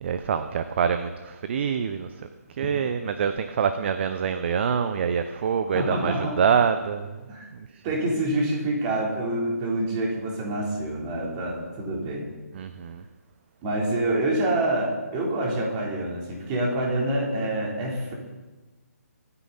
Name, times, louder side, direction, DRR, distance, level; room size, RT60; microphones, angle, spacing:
voice 1, 0.0-7.2 7.5-7.8 12.5-13.0, right 7 dB, 45° right, 10 dB, 0.7 m, -26 dB
voice 2, 5.7-6.4 7.3-7.5 7.8-12.3 13.6-18.1, right 1 dB, 25° right, -1 dB, 3.6 m, -26 dB
24.5 x 9.8 x 4.1 m, 1.2 s
figure-of-eight pair, 145°, 9 cm